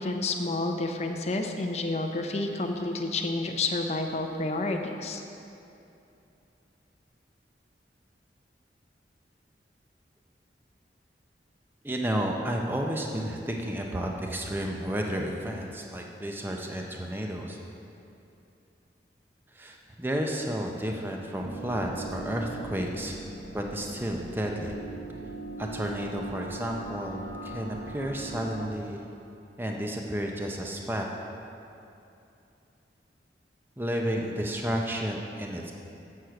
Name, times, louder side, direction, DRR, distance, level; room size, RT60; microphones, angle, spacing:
voice 1, 0.0-5.2, left 2 dB, 35° left, 4 dB, 0.6 m, -30 dB
voice 2, 11.8-17.6 19.5-23.2 23.5-24.7 25.6-29.0 29.6-31.0 33.8-35.7, equal, 10° right, 1 dB, 0.5 m, -32 dB
sound 1, 21.4-28.7, right 2 dB, 85° right, 1.0 m, -40 dB
7.7 x 6.4 x 5.7 m, 2.8 s
head